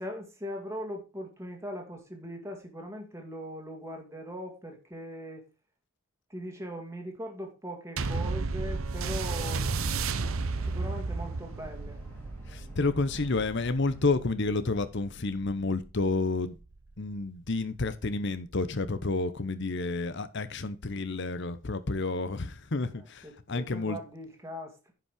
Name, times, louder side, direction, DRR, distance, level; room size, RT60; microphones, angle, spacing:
voice 1, 0.0-5.4 6.3-10.1 10.6-12.0 22.8-24.9, equal, 15° right, 2.1 m, -40 dB
sound 1, 8.0-16.7 17.5-17.6, right 4 dB, 70° right, 0.8 m, -33 dB
sound 2, 8.9-14.0, right 1 dB, 10° left, 2.8 m, -48 dB
voice 2, 12.5-16.5 17.0-24.0, left 3 dB, 50° left, 0.9 m, -30 dB
10.5 x 5.5 x 5.1 m
head